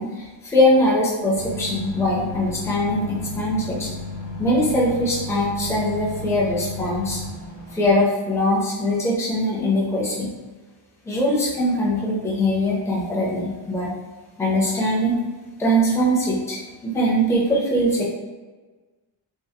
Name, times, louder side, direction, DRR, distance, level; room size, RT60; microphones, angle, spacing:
voice 1, 0.0-3.9 4.4-7.2 7.7-10.3 11.0-13.9 14.4-15.2 15.6-18.0, equal, 5° left, -6 dB, 0.5 m, -21 dB
sound 1, 1.3-8.0, left 3 dB, 45° right, 0.8 m, -33 dB
3.4 x 2.0 x 2.7 m, 1.3 s
wide cardioid pair, 175°, 48 cm